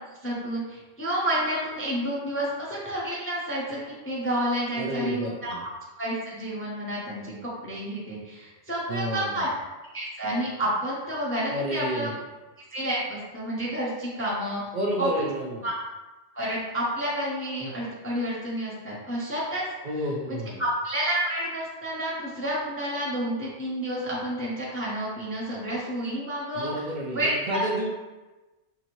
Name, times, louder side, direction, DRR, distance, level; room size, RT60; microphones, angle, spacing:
voice 1, 0.2-5.5 6.0-9.5 9.9-12.1 12.7-14.6 15.0-15.3 15.6-15.7 16.3-19.7 20.3-26.7 27.1-27.7, right 1 dB, 15° left, -6 dB, 0.4 m, -30 dB
voice 2, 4.7-5.6 8.9-9.5 11.5-12.1 14.7-15.7 19.8-20.6 26.5-27.9, right 1 dB, 70° right, -2 dB, 0.4 m, -30 dB
4.7 x 2.6 x 2.9 m, 1.1 s
omnidirectional pair, 1.3 m